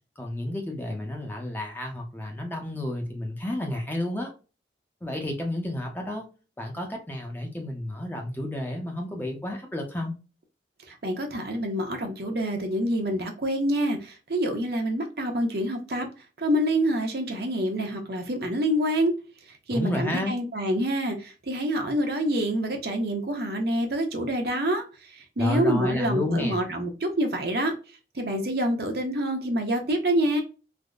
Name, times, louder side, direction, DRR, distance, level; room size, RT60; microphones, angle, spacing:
voice 1, 0.2-4.3 5.0-6.3 6.6-10.1 19.7-20.4 25.4-26.6, left 1 dB, 10° left, 0.6 m, -31 dB
voice 2, 10.9-16.1 16.4-19.1 19.5-27.7 28.1-30.4, right 1 dB, 60° right, 0.7 m, -27 dB
3.4 x 2.1 x 2.3 m
head